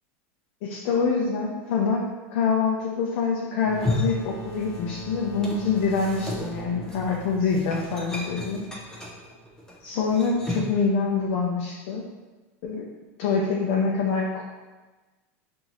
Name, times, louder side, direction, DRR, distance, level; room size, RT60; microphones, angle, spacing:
voice 1, 0.6-8.6 9.8-12.0 12.6-12.8 13.2-14.4, left 5 dB, 55° left, -2 dB, 0.6 m, -25 dB
sound 1, 3.6-9.1, right 1 dB, 30° left, 1.0 m, -40 dB
sound 2, 3.6-5.0 5.3-10.8, left 1 dB, 10° left, 0.7 m, -33 dB
5.5 x 2.6 x 3.0 m, 1.2 s
supercardioid pair, 150°, 7 cm